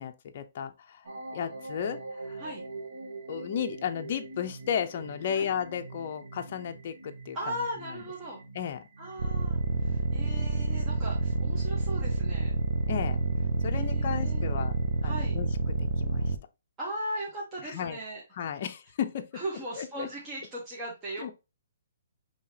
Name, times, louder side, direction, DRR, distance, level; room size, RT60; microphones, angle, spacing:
voice 1, 0.0-2.4 3.3-7.6 7.9-8.0 8.5-8.8 12.9-13.2 13.6-14.8 15.0-16.3 17.6-18.0 18.3-19.3 19.8-20.1 21.2-21.3, left 8 dB, 40° left, 0.5 m, -34 dB
sound 1, 1.0-15.0, right 3 dB, 80° right, 1.6 m, -46 dB
voice 2, 7.3-8.4 9.0-12.5 13.7-14.6 15.0-15.4 16.8-18.2 19.3-21.2, right 1 dB, 15° right, 0.9 m, -38 dB
sound 2, 9.2-16.4, right 3 dB, 55° right, 0.6 m, -28 dB
5.5 x 2.8 x 2.8 m
hypercardioid pair, 165°, 0 cm